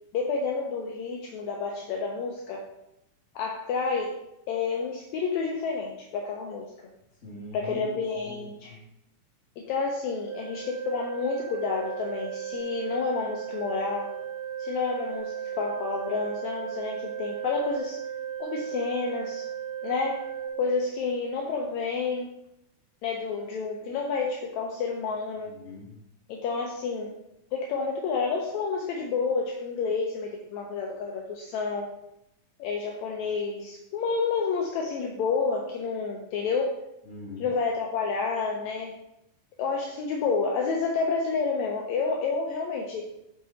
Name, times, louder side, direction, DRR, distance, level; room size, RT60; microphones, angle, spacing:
voice 1, 0.1-2.7 3.3-4.2 4.5-6.7 7.5-8.8 9.6-14.1 14.6-18.0 18.4-19.5 19.8-20.3 20.6-22.3 23.0-25.5 26.3-27.1 27.5-31.9 32.6-36.8 37.4-38.9 39.6-43.1, left 4 dB, 80° left, 0 dB, 1.7 m, -29 dB
voice 2, 7.2-8.8 25.4-25.9 37.0-37.5, left 2 dB, 25° left, -5 dB, 2.0 m, -42 dB
Organ, 10.3-21.3, right 9 dB, 55° right, 0.7 m, -36 dB
5.9 x 4.9 x 4.0 m, 0.84 s
omnidirectional pair, 3.8 m